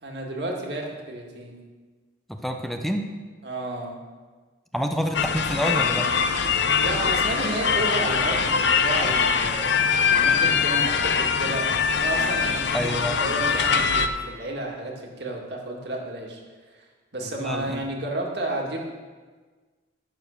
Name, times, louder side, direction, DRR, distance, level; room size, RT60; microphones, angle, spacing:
voice 1, 0.0-1.6 3.4-4.0 6.8-11.7 12.0-16.4 17.1-18.8, right 1 dB, 60° right, 0 dB, 2.1 m, -32 dB
voice 2, 2.3-3.1 4.7-6.1 12.7-13.2 17.2-17.8, equal, ahead, 4 dB, 0.7 m, -28 dB
sound 1, 5.1-14.1, left 6 dB, 65° left, 0.7 m, -22 dB
11.0 x 7.2 x 6.5 m, 1.4 s
head